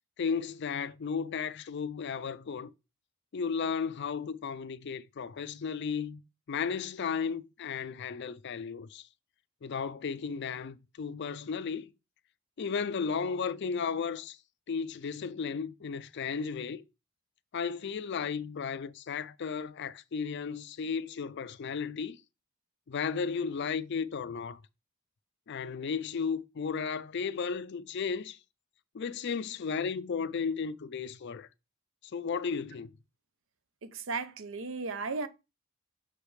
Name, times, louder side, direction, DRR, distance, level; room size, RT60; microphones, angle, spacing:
voice 1, 0.2-2.7 3.3-6.2 6.5-9.1 9.6-11.9 12.6-14.4 14.7-16.8 17.5-22.2 22.9-24.6 25.5-28.4 28.9-31.5 32.1-32.9, left 6 dB, 55° left, 0.4 m, -34 dB
voice 2, 33.8-35.3, right 4 dB, 65° right, 0.7 m, -35 dB
6.4 x 4.9 x 3.2 m
head